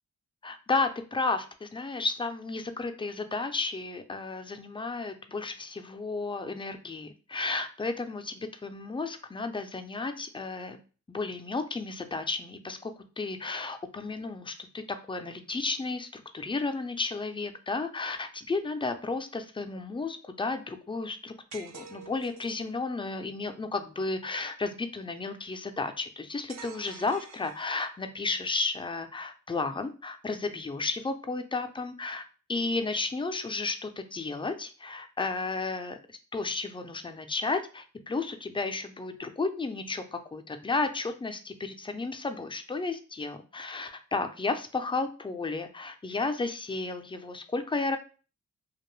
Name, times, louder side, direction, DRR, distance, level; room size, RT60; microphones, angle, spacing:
voice 1, 0.4-10.8 11.1-48.0, left 3 dB, 15° left, 7 dB, 0.3 m, -33 dB
sound 1, 21.5-22.7 26.5-28.1, right 6 dB, 60° right, 0.4 m, -47 dB
2.5 x 2.2 x 3.0 m, 0.37 s
cardioid pair, 75°, 31 cm